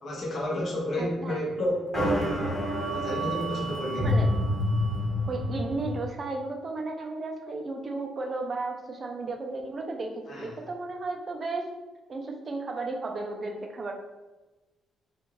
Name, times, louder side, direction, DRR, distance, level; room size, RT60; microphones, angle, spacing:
voice 1, 0.0-2.6 2.9-4.3 10.3-10.5, equal, 50° left, -4 dB, 0.9 m, -31 dB
voice 2, 1.0-1.4 4.0-4.3 5.3-11.7 12.1-13.9, right 3 dB, 40° right, 2 dB, 0.5 m, -34 dB
sound 1, 1.9-6.1, left 1 dB, 15° left, 1.4 m, -28 dB
2.5 x 2.4 x 3.1 m, 1.1 s
cardioid pair, 90°, 0 cm